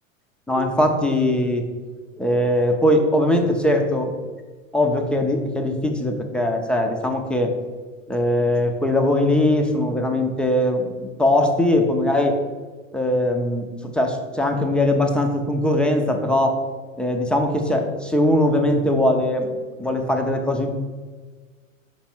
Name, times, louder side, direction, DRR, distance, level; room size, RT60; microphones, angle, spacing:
voice 1, 0.5-1.7 2.2-4.1 4.7-7.5 8.1-12.4 12.9-13.6 13.9-16.6 17.0-19.5 19.8-20.7, left 1 dB, 5° left, 4 dB, 0.4 m, -20 dB
5.2 x 4.7 x 4.3 m, 1.4 s
hypercardioid pair, 105°, 40 cm